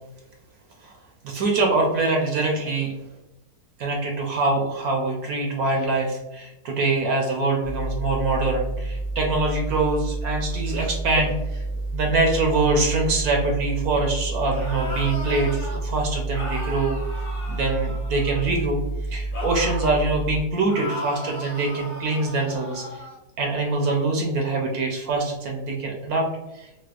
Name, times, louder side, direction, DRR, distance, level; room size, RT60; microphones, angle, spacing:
voice 1, 1.2-2.9 3.8-11.6 11.9-17.0 17.5-18.8 19.1-22.8 23.4-26.3 26.5-26.7, right 3 dB, 70° right, 0 dB, 1.0 m, -24 dB
sound 1, 7.6-20.4, right 2 dB, 75° left, 1.1 m, -29 dB
sound 2, 14.4-15.8 16.3-18.6 19.3-20.0 20.7-23.2, left 1 dB, 55° left, 0.9 m, -36 dB
4.1 x 2.2 x 2.4 m, 0.95 s
omnidirectional pair, 1.7 m